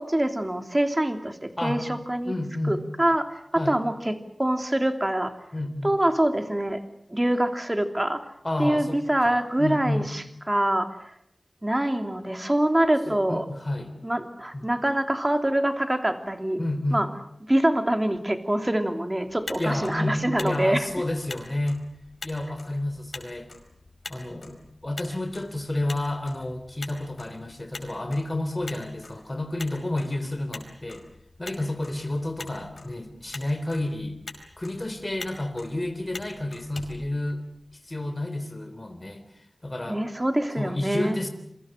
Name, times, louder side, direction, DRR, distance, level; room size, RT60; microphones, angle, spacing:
voice 1, 0.0-2.3 2.7-5.3 5.8-6.8 7.1-8.3 8.6-11.1 11.6-13.4 14.0-16.6 16.9-17.1 17.4-20.9 39.9-41.2, right 1 dB, 20° right, 7 dB, 3.1 m, -25 dB
voice 2, 2.2-2.9 3.5-3.8 5.5-5.9 8.4-10.2 13.0-13.9 14.5-14.7 16.6-17.1 19.6-21.8 22.2-23.5 24.1-31.0 31.4-34.2 34.6-37.4 37.7-39.3 39.6-40.0 40.6-41.3, left 1 dB, 30° left, 8 dB, 3.5 m, -30 dB
Motor vehicle (road), 19.2-37.8, left 3 dB, 85° left, 5.2 m, -45 dB
28.0 x 24.0 x 6.6 m, 0.71 s
wide cardioid pair, 70°, 0 cm